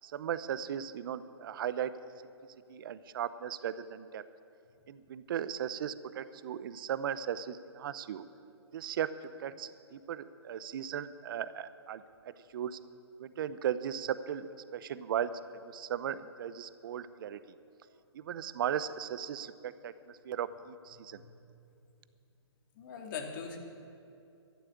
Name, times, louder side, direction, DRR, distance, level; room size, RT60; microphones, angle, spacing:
voice 1, 0.0-1.9 2.7-4.2 4.9-8.2 8.7-9.1 9.4-12.0 12.5-12.8 13.2-15.3 15.6-17.4 18.1-19.9 20.2-21.2, right 9 dB, 50° right, 15 dB, 0.7 m, -37 dB
voice 2, 22.8-23.6, left 6 dB, 45° left, 2 dB, 2.5 m, -40 dB
13.0 x 11.0 x 8.5 m, 2.6 s
hypercardioid pair, 135°, 15 cm